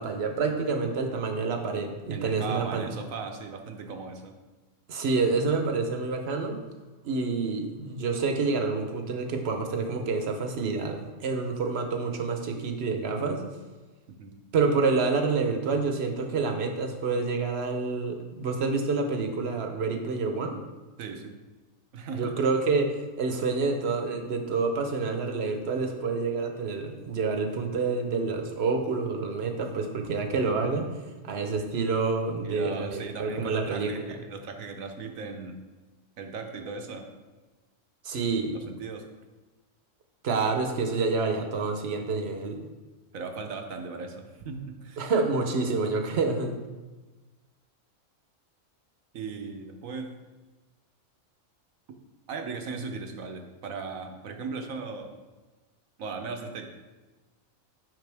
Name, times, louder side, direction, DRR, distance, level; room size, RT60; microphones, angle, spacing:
voice 1, 0.0-2.9 4.9-6.6 7.0-13.4 14.5-20.6 22.1-30.9 31.2-34.1 38.0-38.5 40.2-42.7 45.0-46.6, right 4 dB, 55° right, 5 dB, 1.0 m, -28 dB
voice 2, 2.1-4.3 14.2-14.3 21.0-21.4 21.9-22.4 32.4-35.5 36.2-37.1 38.5-39.1 43.1-45.0 49.1-50.1 52.3-55.1 56.0-56.7, right 4 dB, 75° right, 5 dB, 1.3 m, -37 dB
9.3 x 5.7 x 3.4 m, 1.2 s
omnidirectional pair, 1.4 m